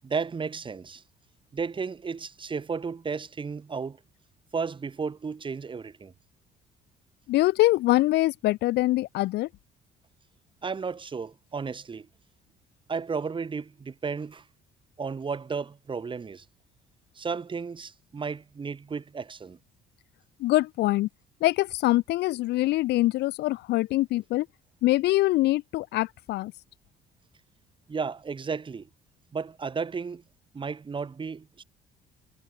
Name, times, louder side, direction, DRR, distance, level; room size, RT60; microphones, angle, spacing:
voice 1, 0.0-1.0 1.5-4.0 4.5-6.1 10.6-12.1 12.9-14.4 15.0-16.4 17.1-19.6 27.9-28.9 29.3-30.2 30.5-31.6, right 5 dB, 30° right, 5.0 m, -33 dB
voice 2, 7.3-9.5 20.4-21.1 21.4-24.5 24.8-26.5, left 17 dB, 80° left, 2.2 m, -24 dB
cardioid pair, 110°, 17 cm